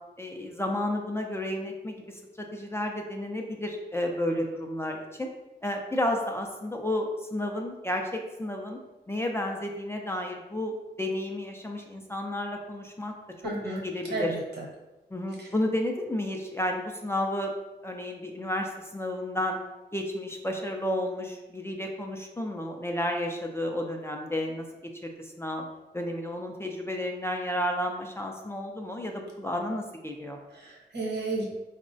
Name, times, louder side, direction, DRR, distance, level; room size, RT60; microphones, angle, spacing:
voice 1, 0.2-5.3 5.6-8.8 9.1-13.1 13.4-14.4 15.1-17.5 17.8-19.6 19.9-25.7 25.9-30.4, left 1 dB, 15° left, 2 dB, 0.3 m, -32 dB
voice 2, 13.4-13.8 14.0-14.6 15.4-15.5 30.5-31.5, right 2 dB, 75° right, -2 dB, 0.9 m, -32 dB
4.4 x 2.0 x 2.6 m, 1.1 s
wide cardioid pair, 125°, 18 cm